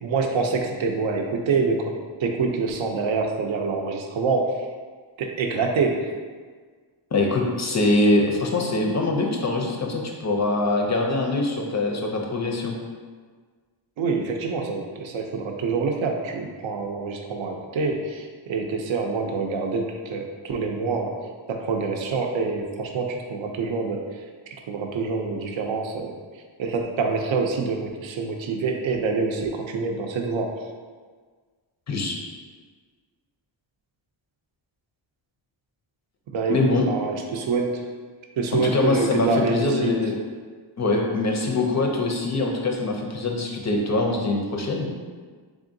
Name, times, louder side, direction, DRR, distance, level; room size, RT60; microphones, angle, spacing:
voice 1, 0.0-1.9 2.2-4.6 5.2-6.1 14.0-21.2 21.5-24.1 24.7-26.1 26.6-30.6 36.3-37.8 38.4-39.9, right 4 dB, 70° right, 3 dB, 0.6 m, -26 dB
voice 2, 7.1-12.8 31.9-32.2 36.5-36.9 38.5-40.1 40.8-44.9, left 2 dB, 35° left, 1 dB, 0.4 m, -23 dB
3.6 x 3.5 x 2.6 m, 1.5 s
wide cardioid pair, 140°, 49 cm